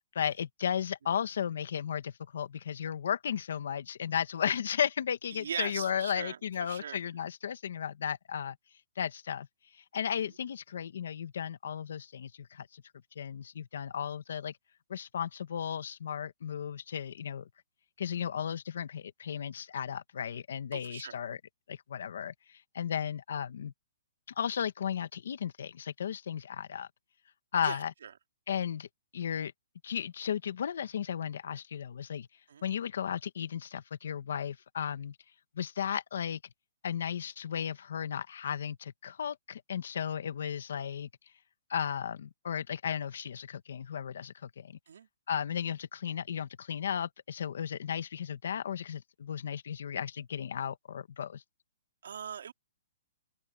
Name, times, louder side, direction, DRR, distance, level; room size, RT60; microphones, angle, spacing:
voice 1, 0.1-8.6 9.0-9.5 9.7-12.8 13.1-14.5 14.9-17.5 18.0-21.4 21.7-23.7 24.4-26.9 27.5-27.9 28.5-28.9 29.1-29.5 29.8-32.3 32.6-35.2 35.5-36.4 36.8-41.1 41.7-44.8 45.3-51.4, left 8 dB, 65° left, 1.5 m, -35 dB
voice 2, 5.3-7.0 10.1-10.3 20.7-21.2 27.6-28.1 32.5-32.6 44.9-45.1 52.0-52.5, right 8 dB, 70° right, 4.3 m, -41 dB
open air
hypercardioid pair, 170°, 0 cm